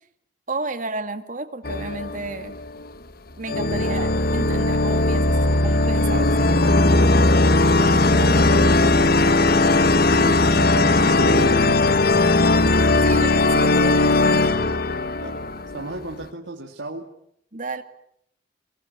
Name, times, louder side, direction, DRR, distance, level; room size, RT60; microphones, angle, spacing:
voice 1, 0.5-2.5 3.4-7.0 10.1-10.3 13.0-14.5 17.5-17.8, right 2 dB, 40° right, 8 dB, 2.1 m, -32 dB
sound 1, 1.6-2.9 3.5-16.1, left 2 dB, 50° left, 1.1 m, -18 dB
voice 2, 7.8-9.5 10.2-12.0 15.2-15.4 15.7-17.1, right 2 dB, 70° right, 1 dB, 2.3 m, -34 dB
27.0 x 20.0 x 9.6 m, 0.73 s
head